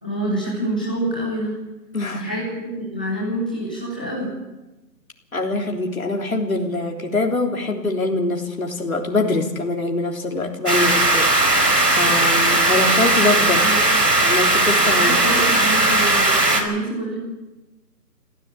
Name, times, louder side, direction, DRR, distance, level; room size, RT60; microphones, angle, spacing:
voice 1, 0.0-1.6 2.1-4.3 13.5-13.8 14.9-17.2, right 1 dB, 5° left, -7 dB, 1.8 m, -27 dB
voice 2, 1.9-2.3 5.3-13.6 14.2-15.2 15.5-15.6, left 2 dB, 55° left, 2 dB, 3.5 m, -24 dB
sound 1, 10.7-16.6, right 2 dB, 70° right, 5.4 m, -17 dB
25.5 x 15.5 x 8.5 m, 1.0 s
figure-of-eight pair, 180°, 50 cm